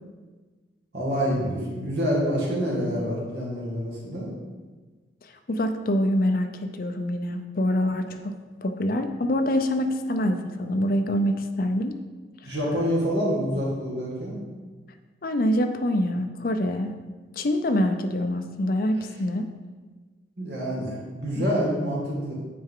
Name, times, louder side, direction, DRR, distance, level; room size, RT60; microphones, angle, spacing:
voice 1, 0.9-4.3 12.4-14.4 18.9-19.1 20.4-22.3, equal, 65° right, -5 dB, 2.1 m, -27 dB
voice 2, 5.5-8.3 8.6-12.0 15.2-16.9 17.4-19.5 21.4-21.5, left 1 dB, 50° left, 7 dB, 0.6 m, -25 dB
8.5 x 4.6 x 3.8 m, 1.3 s
head